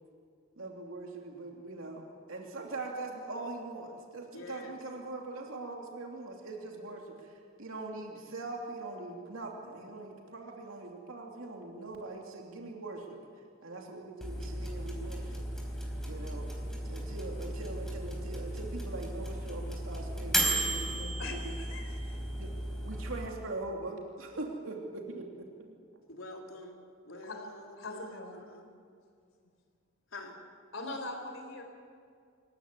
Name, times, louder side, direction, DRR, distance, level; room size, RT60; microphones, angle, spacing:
voice 1, 0.6-13.2 13.6-15.4 16.0-16.5 16.8-21.5 22.4-22.5 22.8-25.7, right 2 dB, 80° right, 0 dB, 2.8 m, -42 dB
voice 2, 4.3-4.8 26.1-26.7 27.0-28.8 30.1-30.4, left 2 dB, 90° left, 1 dB, 3.6 m, -46 dB
sound 1, 14.2-23.3, right 1 dB, ahead, 4.2 m, -35 dB
voice 3, 21.2-22.2 27.2-27.4 27.8-28.3 30.7-31.6, left 2 dB, 70° left, 4 dB, 4.4 m, -41 dB
26.0 x 15.0 x 9.7 m, 2.3 s
head